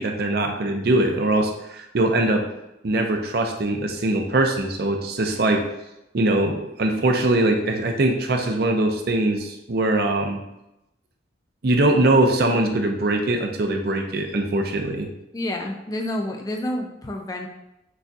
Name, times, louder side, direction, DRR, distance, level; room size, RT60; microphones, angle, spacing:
voice 1, 0.0-2.4 2.8-5.6 6.1-10.4 11.6-15.1, right 2 dB, 55° right, 4 dB, 0.5 m, -22 dB
voice 2, 15.3-17.5, left 1 dB, 20° left, 2 dB, 0.4 m, -29 dB
6.1 x 2.3 x 2.7 m, 0.89 s
head